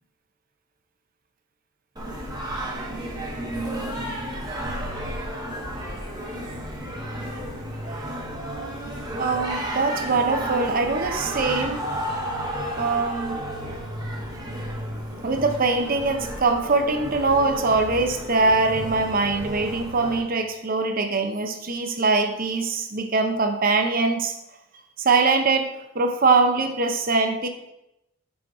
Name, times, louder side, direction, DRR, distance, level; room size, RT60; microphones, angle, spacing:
Singing, 2.0-20.2, right 1 dB, 20° right, 1.0 m, -32 dB
voice 1, 9.2-11.9 12.8-13.4 15.2-24.3 25.0-27.5, right 3 dB, 40° right, 6 dB, 0.7 m, -22 dB
6.3 x 4.5 x 4.8 m, 0.87 s
head